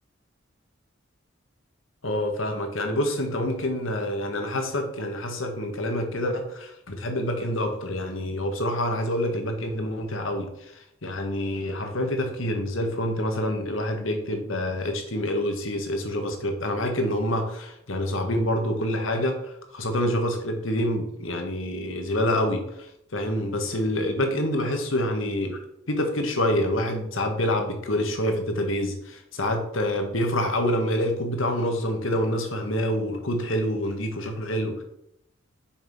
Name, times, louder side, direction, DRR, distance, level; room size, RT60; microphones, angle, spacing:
voice 1, 2.0-25.6 25.9-34.8, left 1 dB, 75° left, 4 dB, 1.7 m, -27 dB
7.1 x 5.6 x 5.6 m, 0.77 s
head